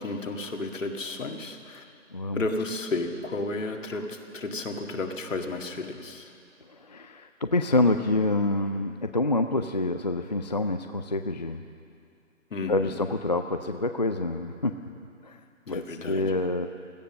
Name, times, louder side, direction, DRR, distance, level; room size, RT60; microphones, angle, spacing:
voice 1, 0.0-1.8 2.3-6.3 12.5-12.7 15.7-16.4, left 2 dB, 70° left, 3 dB, 2.0 m, -32 dB
voice 2, 2.1-2.4 6.7-11.6 12.7-14.8 15.2-15.4 15.7-16.7, left 2 dB, 35° left, 7 dB, 0.4 m, -27 dB
17.0 x 12.5 x 6.4 m, 2.4 s
figure-of-eight pair, 155°, 39 cm